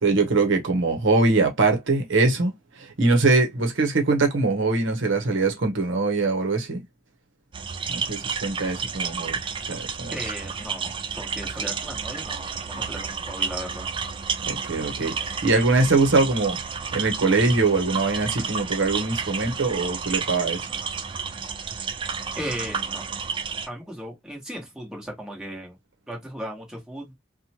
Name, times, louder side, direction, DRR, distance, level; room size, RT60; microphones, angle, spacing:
voice 1, 0.0-2.5 2.8-6.8 7.9-9.4 9.7-10.1 14.5-16.6 16.9-20.7, right 3 dB, 65° right, 0.8 m, -22 dB
sound 1, 7.5-23.7, right 5 dB, 25° right, 0.3 m, -31 dB
voice 2, 10.1-13.9 22.4-23.0 23.7-25.8 26.1-27.1, equal, 5° right, 1.2 m, -36 dB
2.9 x 2.2 x 2.8 m
head